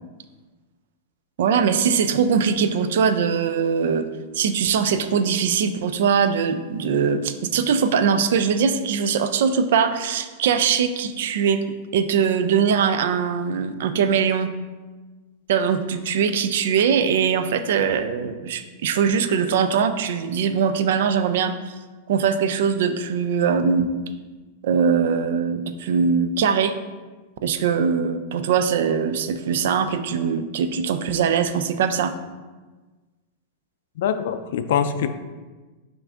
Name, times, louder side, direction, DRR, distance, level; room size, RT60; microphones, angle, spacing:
voice 1, 1.4-4.1 4.3-11.6 11.9-14.5 15.5-21.7 22.1-23.9 24.6-26.7 27.4-32.1, right 6 dB, 75° right, 10 dB, 0.4 m, -21 dB
voice 2, 34.0-35.1, left 8 dB, 70° left, 9 dB, 0.3 m, -23 dB
5.8 x 2.6 x 3.5 m, 1.3 s
hypercardioid pair, 130°, 0 cm